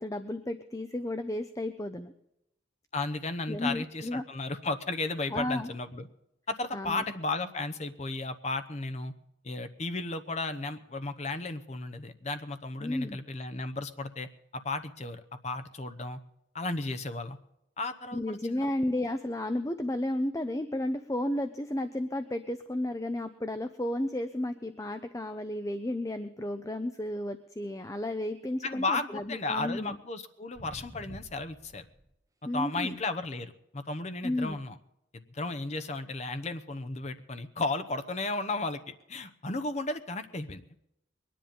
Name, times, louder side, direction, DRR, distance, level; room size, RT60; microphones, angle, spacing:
voice 1, 0.0-2.1 3.5-4.2 5.3-5.7 6.7-7.0 12.8-13.2 18.1-30.0 32.5-33.0 34.2-34.6, left 1 dB, 15° left, 9 dB, 0.6 m, -33 dB
voice 2, 2.9-6.1 6.5-9.1 9.4-16.2 16.5-17.4 17.8-18.7 28.6-31.9 32.5-34.8 35.1-40.6, left 2 dB, 35° left, 10 dB, 0.9 m, -34 dB
sound 1, 30.5-32.2 33.0-33.2 39.0-39.1, equal, 15° right, 1.2 m, -49 dB
22.0 x 10.5 x 5.3 m, 0.84 s
head